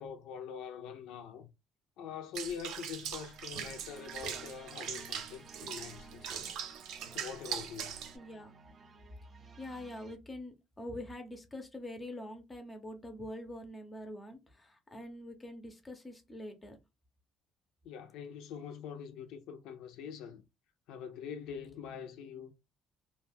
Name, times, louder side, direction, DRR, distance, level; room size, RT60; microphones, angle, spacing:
voice 1, 0.0-1.5 2.0-6.5 7.1-8.1 17.8-20.4 20.9-22.5, left 7 dB, 90° left, 0.4 m, -44 dB
Water / Bathtub (filling or washing), 2.3-8.2, right 8 dB, 80° right, 0.5 m, -41 dB
sound 1, 2.9-10.2, right 4 dB, 30° right, 0.4 m, -55 dB
voice 2, 8.1-8.5 9.6-16.8, left 1 dB, 15° left, 0.5 m, -45 dB
2.4 x 2.2 x 3.3 m
cardioid pair, 155°, 0 cm